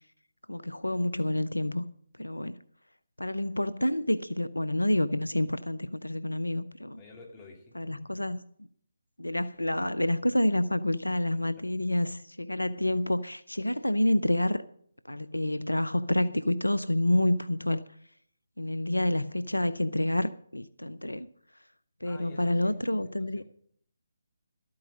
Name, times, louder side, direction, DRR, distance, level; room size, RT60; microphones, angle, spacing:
voice 1, 0.5-1.8 2.2-2.6 3.2-7.0 7.8-8.4 9.2-14.6 15.0-17.8 18.6-21.3 22.0-23.4, left 1 dB, 85° left, 0.6 m, -28 dB
voice 2, 7.0-8.1 11.3-11.7 22.0-22.8 23.4-23.5, left 2 dB, 20° left, 2.8 m, -51 dB
12.5 x 8.7 x 7.4 m
figure-of-eight pair, 145°, 0 cm